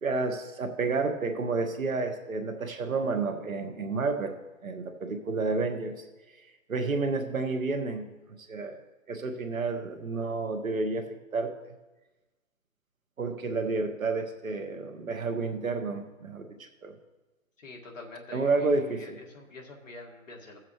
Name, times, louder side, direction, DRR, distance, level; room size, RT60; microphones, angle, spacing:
voice 1, 0.0-4.3 4.6-6.0 6.7-8.1 8.5-8.8 9.1-11.7 13.2-16.9 18.3-19.2, right 3 dB, 80° right, 5 dB, 1.4 m, -30 dB
voice 2, 17.6-20.6, left 2 dB, 70° left, 0 dB, 2.0 m, -46 dB
16.0 x 7.4 x 3.1 m, 1.1 s
hypercardioid pair, 160°, 40 cm